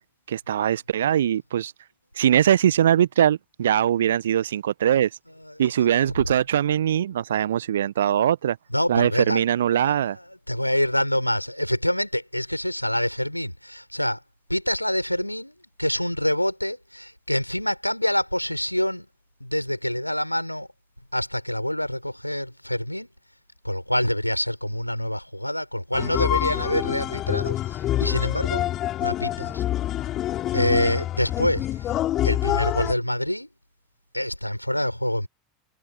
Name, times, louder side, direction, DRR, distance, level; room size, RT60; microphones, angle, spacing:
voice 1, 0.3-1.7 2.2-5.1 5.6-8.6 8.9-10.2, right 10 dB, 65° right, 1.2 m, -21 dB
voice 2, 8.7-9.4 10.5-14.2 14.5-15.5 15.8-19.1 19.4-20.7 21.1-23.1 23.6-28.6 29.0-29.6 30.5-31.7 32.2-33.5 34.1-35.3, left 1 dB, 90° left, 4.6 m, -26 dB
sound 1, 25.9-32.9, left 13 dB, 35° left, 4.7 m, -26 dB
figure-of-eight pair, 80°, 0 cm